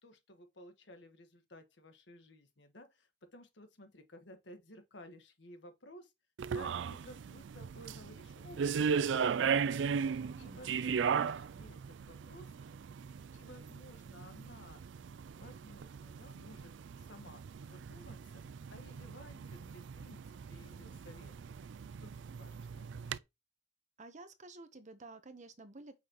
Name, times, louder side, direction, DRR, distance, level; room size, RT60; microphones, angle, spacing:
voice 1, 0.0-6.1 6.5-10.0 10.4-12.5 13.3-14.8 15.4-16.7 17.1-17.4 17.7-18.4 18.7-21.3 22.0-22.1 22.4-23.1, left 1 dB, 75° left, 1.5 m, -55 dB
sound 1, 6.4-23.2, right 6 dB, 80° right, 0.4 m, -37 dB
voice 2, 10.2-10.6 24.0-26.0, right 2 dB, 40° right, 1.0 m, -52 dB
6.8 x 5.8 x 3.0 m
head